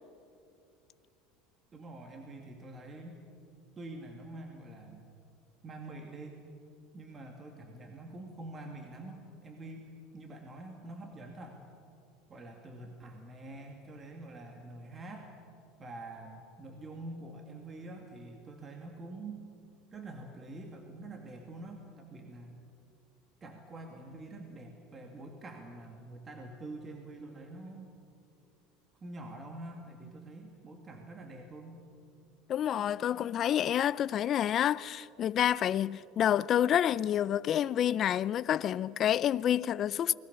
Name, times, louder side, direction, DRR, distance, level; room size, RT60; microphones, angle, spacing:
voice 1, 1.7-3.2 3.8-5.1 5.6-6.4 6.9-11.6 12.3-15.3 15.8-19.5 19.9-22.6 23.4-27.9 29.0-31.8, right 2 dB, 25° right, 2.4 m, -46 dB
voice 2, 32.5-40.1, left 10 dB, 40° left, 0.5 m, -28 dB
29.0 x 20.5 x 7.0 m
supercardioid pair, 130°, 0 cm